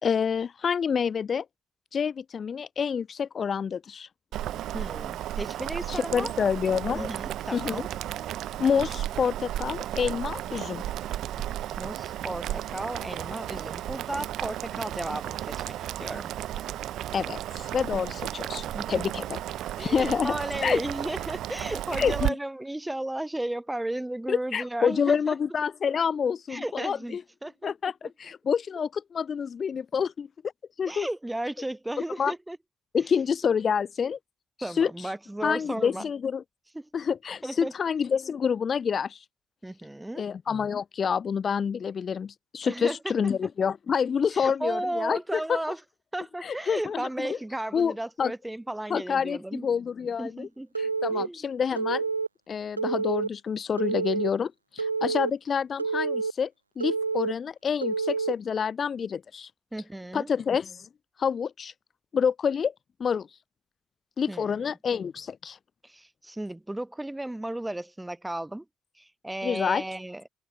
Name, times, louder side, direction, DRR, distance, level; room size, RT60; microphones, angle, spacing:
voice 1, 0.0-1.4 1.9-4.1 5.9-7.1 7.5-7.8 8.6-10.8 17.1-19.4 19.8-20.4 20.6-20.8 22.0-22.3 24.3-27.2 27.6-30.3 30.8-31.1 32.2-32.3 32.9-34.2 34.6-35.1 35.4-36.4 36.9-39.2 40.2-45.6 46.4-47.4 47.7-48.3 48.9-50.5 50.8-52.1 52.5-56.5 56.8-59.5 60.1-60.9 61.2-61.7 62.1-62.7 63.0-63.3 64.2-65.6 69.4-69.8, left 7 dB, 45° left, 1.2 m, -28 dB
Boiling, 4.3-22.3, right 12 dB, 60° right, 2.4 m, -34 dB
voice 2, 4.5-6.3 6.9-7.9 11.8-16.3 18.7-19.0 19.8-25.4 26.5-27.7 30.9-32.6 34.6-36.1 36.7-36.9 37.4-37.7 39.6-40.2 42.6-43.2 44.3-45.8 46.1-49.7 50.2-50.7 51.1-51.4 59.7-60.3 64.3-64.7 65.8-68.7 69.0-70.2, right 1 dB, 10° right, 3.8 m, -34 dB
Telephone, 50.7-51.3 51.8-52.3 52.8-53.3 53.8-54.3 54.8-55.3 55.8-56.3 56.8-57.3 57.8-58.3, right 4 dB, 90° right, 0.7 m, -28 dB
figure-of-eight pair, 45°, 0 cm